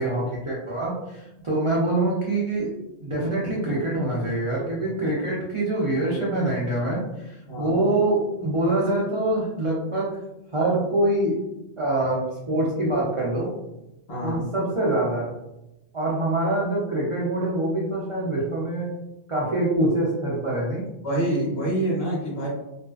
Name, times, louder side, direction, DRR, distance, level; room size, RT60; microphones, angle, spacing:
voice 1, 0.0-2.7 3.0-10.1 10.5-11.4 11.8-13.5 14.2-15.3 15.9-18.9 19.3-20.8, right 1 dB, 55° right, -6 dB, 0.3 m, -25 dB
voice 2, 14.1-14.4 21.0-22.5, right 1 dB, 60° left, -5 dB, 1.1 m, -26 dB
2.5 x 2.4 x 2.3 m, 0.93 s
omnidirectional pair, 1.3 m